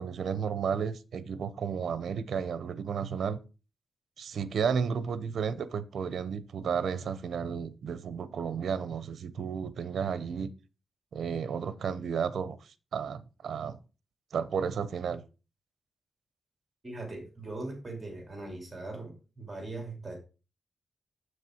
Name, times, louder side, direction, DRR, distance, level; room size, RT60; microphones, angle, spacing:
voice 1, 0.0-3.4 4.2-10.5 11.1-13.8 14.3-15.2, right 6 dB, 60° right, 0.7 m, -33 dB
voice 2, 16.8-20.2, right 2 dB, 20° right, 2.8 m, -40 dB
7.6 x 6.6 x 4.5 m
wide cardioid pair, 180°, 0 cm